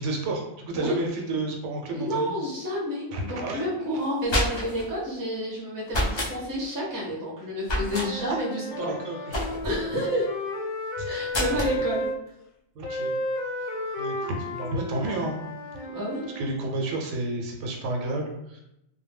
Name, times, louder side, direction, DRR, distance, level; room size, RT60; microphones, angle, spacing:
voice 1, 0.0-2.3 3.1-3.6 8.7-9.3 11.0-11.1 11.7-11.8 12.8-13.1 14.0-15.4 16.4-18.6, right 2 dB, 80° right, 1 dB, 0.9 m, -31 dB
voice 2, 1.9-10.3 11.0-12.1 15.8-16.2, equal, 20° right, -4 dB, 0.5 m, -30 dB
sound 1, 4.0-4.9 5.9-6.3 7.6-8.1 9.3-9.8 11.3-11.8, equal, 50° left, 0.3 m, -27 dB
Wind instrument woodwind instrument, 7.7-12.2 12.8-16.5, left 1 dB, 85° left, 0.9 m, -33 dB
2.1 x 2.1 x 3.3 m, 0.83 s
omnidirectional pair, 1.2 m